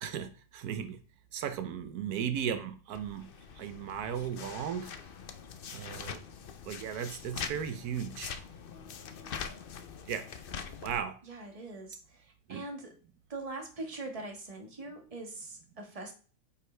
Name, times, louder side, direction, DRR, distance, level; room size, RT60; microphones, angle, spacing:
voice 1, 0.0-1.0 1.3-3.3 3.6-4.9 5.7-6.2 6.6-8.3 10.1-10.3 10.8-11.2 12.5-12.6, right 8 dB, 85° right, 1.2 m, -36 dB
sound 1, 2.9-11.0, left 6 dB, 55° left, 0.6 m, -43 dB
voice 2, 11.2-12.9 13.3-16.1, right 2 dB, 25° right, 1.4 m, -42 dB
8.8 x 5.0 x 3.3 m
omnidirectional pair, 1.6 m